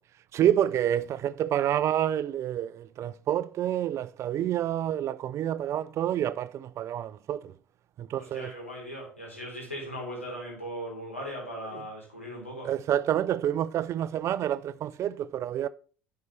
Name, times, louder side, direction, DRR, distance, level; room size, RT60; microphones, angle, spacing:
voice 1, 0.3-7.5 8.0-8.5 11.7-11.8 12.6-15.7, right 11 dB, 45° right, 0.5 m, -28 dB
voice 2, 8.2-12.7, equal, 90° left, 3.3 m, -38 dB
10.5 x 5.6 x 3.3 m
figure-of-eight pair, 60°, 7 cm